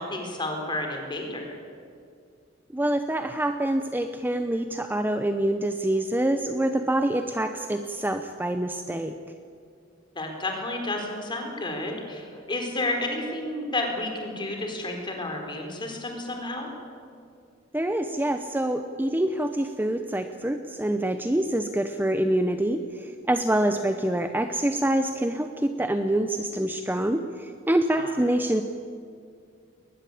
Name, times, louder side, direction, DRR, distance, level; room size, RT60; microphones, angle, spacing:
voice 1, 0.0-1.6 10.1-16.7 27.9-28.1, left 2 dB, 25° left, 2 dB, 4.2 m, -31 dB
voice 2, 2.7-9.2 17.7-28.6, right 1 dB, 10° right, 7 dB, 0.8 m, -26 dB
21.5 x 20.0 x 8.5 m, 2.3 s
head